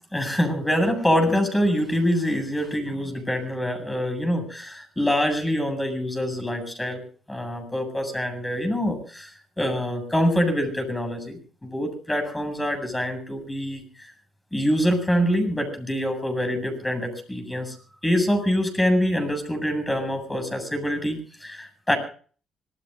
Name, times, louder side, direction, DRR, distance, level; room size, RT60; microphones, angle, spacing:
voice 1, 0.1-7.0 7.3-9.3 9.6-13.8 14.5-17.8 18.0-22.0, equal, 10° left, 6 dB, 7.9 m, -25 dB
26.0 x 20.5 x 2.6 m, 0.43 s
cardioid pair, 90°, 0 cm